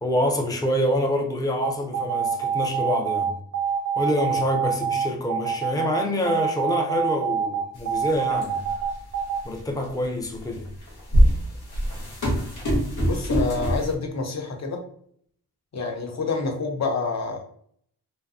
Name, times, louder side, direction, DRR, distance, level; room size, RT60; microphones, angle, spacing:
voice 1, 0.0-3.3 4.0-8.6 9.4-10.6, left 1 dB, 10° left, 0.5 m, -26 dB
sound 1, 1.6-9.4, right 8 dB, 45° right, 0.5 m, -25 dB
sound 2, 7.8-7.9 8.3-8.8 9.5-9.6 10.6-14.0, equal, 85° left, 0.9 m, -22 dB
voice 2, 13.0-14.9 15.7-17.4, left 4 dB, 45° left, 0.7 m, -28 dB
2.6 x 2.2 x 2.4 m
cardioid pair, 70°, 37 cm